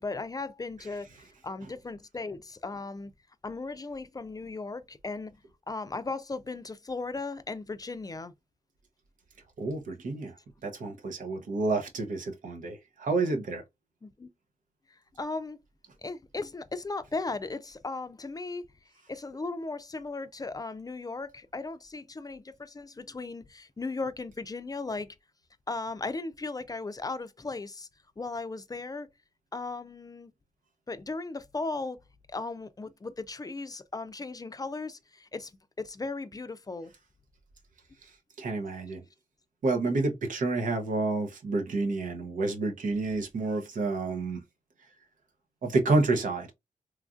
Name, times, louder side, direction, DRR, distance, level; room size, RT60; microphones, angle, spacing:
voice 1, 0.0-3.1 3.4-5.3 5.7-8.3 14.0-14.3 14.9-15.6 16.0-18.7 19.1-25.2 25.7-27.9 28.2-29.1 29.5-30.3 30.9-32.0 32.3-35.5 35.8-36.9, left 3 dB, 30° left, 0.4 m, -37 dB
voice 2, 9.6-10.3 10.6-13.6 38.4-39.0 39.6-44.4 45.6-46.5, right 3 dB, 80° right, 0.7 m, -29 dB
3.1 x 2.4 x 2.4 m
cardioid pair, 60°, 13 cm